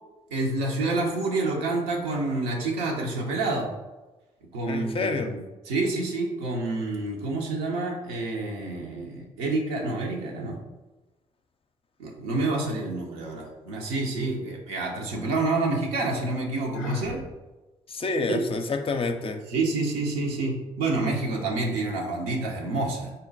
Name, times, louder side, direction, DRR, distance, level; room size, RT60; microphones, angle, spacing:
voice 1, 0.3-3.7 4.5-10.6 12.0-17.2 18.3-18.4 19.5-23.1, right 2 dB, 80° right, -1 dB, 0.7 m, -28 dB
voice 2, 4.7-5.4 17.9-19.4, left 3 dB, 35° left, 6 dB, 0.5 m, -28 dB
Sigh, 16.7-17.3, left 3 dB, 90° left, 0.4 m, -33 dB
3.8 x 2.2 x 3.9 m, 1.1 s
hypercardioid pair, 45°, 16 cm